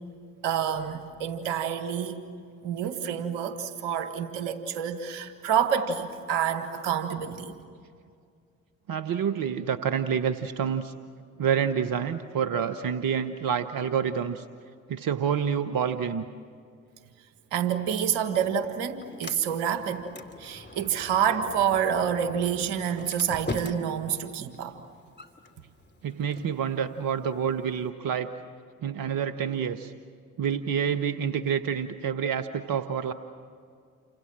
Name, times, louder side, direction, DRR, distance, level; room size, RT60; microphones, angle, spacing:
voice 1, 0.4-2.2 2.6-7.5 17.5-20.1 20.4-24.8, right 8 dB, 80° right, 9 dB, 1.7 m, -28 dB
voice 2, 8.9-10.9 11.4-14.4 14.9-16.2 26.0-28.3 28.8-29.9 30.4-33.1, right 7 dB, 60° right, 10 dB, 1.1 m, -28 dB
Sliding door, 17.9-27.9, left 2 dB, 25° left, 2.8 m, -43 dB
29.0 x 26.0 x 7.5 m, 2.3 s
hypercardioid pair, 45°, 39 cm